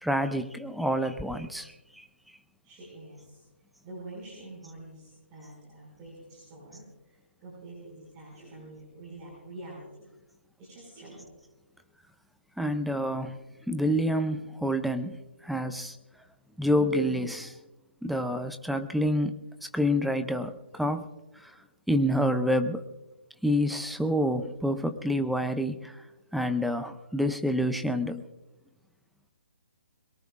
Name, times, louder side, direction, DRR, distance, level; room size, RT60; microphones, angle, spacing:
voice 1, 0.0-2.0 12.6-13.4 13.7-16.0 16.6-17.6 18.0-19.3 19.7-21.1 21.4-21.5 21.9-22.8 23.4-26.0 26.3-28.2, equal, ahead, 9 dB, 0.4 m, -28 dB
voice 2, 2.6-3.4 3.8-10.1 10.6-11.3, right 2 dB, 20° right, -5 dB, 5.4 m, -46 dB
22.5 x 22.0 x 2.4 m, 1.1 s
hypercardioid pair, 165°, 7 cm